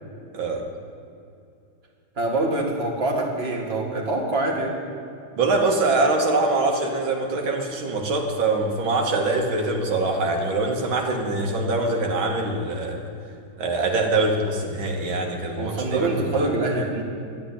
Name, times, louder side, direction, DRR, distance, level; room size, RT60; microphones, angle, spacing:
voice 1, 2.2-4.7 15.6-17.0, right 2 dB, 30° right, -1 dB, 2.3 m, -25 dB
voice 2, 5.4-13.1 13.6-16.5, right 2 dB, 75° right, 1 dB, 2.3 m, -23 dB
12.0 x 10.5 x 9.9 m, 2.6 s
omnidirectional pair, 2.2 m